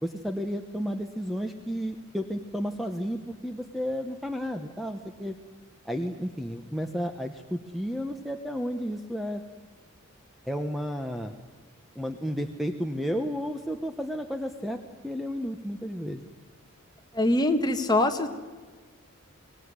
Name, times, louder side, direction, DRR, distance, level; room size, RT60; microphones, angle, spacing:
voice 1, 0.0-5.4 5.8-9.4 10.5-11.3 11.9-16.2, equal, ahead, 5 dB, 1.1 m, -32 dB
voice 2, 17.1-18.3, left 1 dB, 20° left, 6 dB, 1.7 m, -23 dB
24.0 x 19.5 x 9.7 m, 1.5 s
head